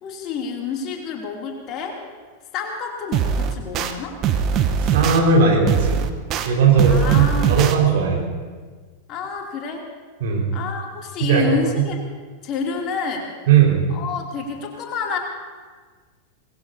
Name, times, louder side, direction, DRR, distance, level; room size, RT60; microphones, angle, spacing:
voice 1, 0.0-2.0 2.5-4.2 6.8-7.6 9.1-9.8 10.5-12.0 12.4-13.3 13.9-15.2, left 5 dB, 35° left, 0 dB, 2.9 m, -28 dB
sound 1, 3.1-3.9 4.2-5.2 5.7-6.5 6.8-7.7, right 7 dB, 35° right, 1.0 m, -21 dB
voice 2, 4.8-6.0 6.4-8.2 10.2-10.5 11.2-11.8 13.5-13.9, right 6 dB, 55° right, -2 dB, 5.0 m, -17 dB
24.5 x 20.0 x 2.8 m, 1.5 s
figure-of-eight pair, 90°, 0 cm